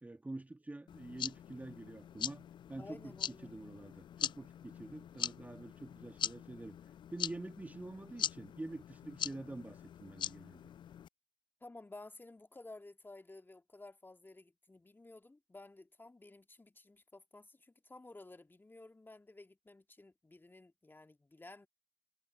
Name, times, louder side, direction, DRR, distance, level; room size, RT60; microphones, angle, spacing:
voice 1, 0.0-6.8 7.1-10.7, right 2 dB, 10° right, 1.5 m, -47 dB
sound 1, 0.9-11.1, left 10 dB, 30° left, 0.3 m, -43 dB
voice 2, 2.8-3.6 11.6-21.7, left 2 dB, 15° left, 2.2 m, -54 dB
figure-of-eight pair, 55°, 15 cm